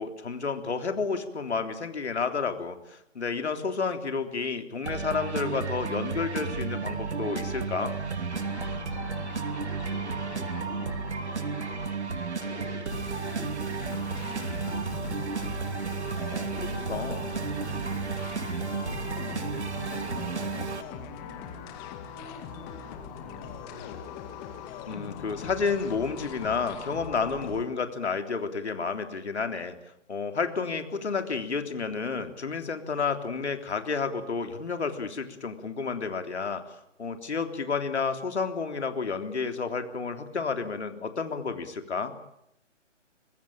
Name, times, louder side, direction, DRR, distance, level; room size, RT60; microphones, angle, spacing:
voice 1, 0.0-8.0 16.3-17.2 24.8-29.8 30.1-42.1, left 5 dB, 60° left, 7 dB, 3.5 m, -31 dB
sound 1, 4.8-20.8, right 5 dB, 65° right, 2.8 m, -33 dB
sound 2, 8.3-12.0 12.4-27.6, left 7 dB, 15° left, 2.0 m, -42 dB
voice 2, 9.6-12.7 13.0-15.9 16.5-19.3 19.6-21.7 22.1-24.3, equal, 15° right, -1 dB, 5.5 m, -49 dB
25.0 x 20.5 x 9.0 m, 0.80 s
figure-of-eight pair, 150°, 37 cm